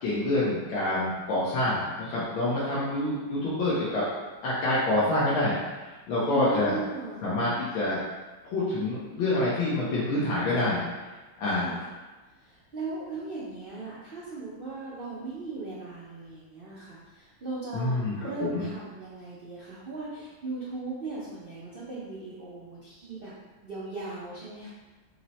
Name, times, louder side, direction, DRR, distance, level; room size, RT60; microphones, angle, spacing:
voice 1, 0.0-4.1 4.4-6.8 7.2-8.0 8.4-10.8 11.4-11.7 17.7-18.6, left 1 dB, 85° left, -8 dB, 1.6 m, -27 dB
voice 2, 6.2-7.2 11.5-11.9 12.3-23.3 23.6-24.7, right 3 dB, 80° right, -9 dB, 0.5 m, -38 dB
4.4 x 2.1 x 4.0 m, 1.2 s
omnidirectional pair, 2.1 m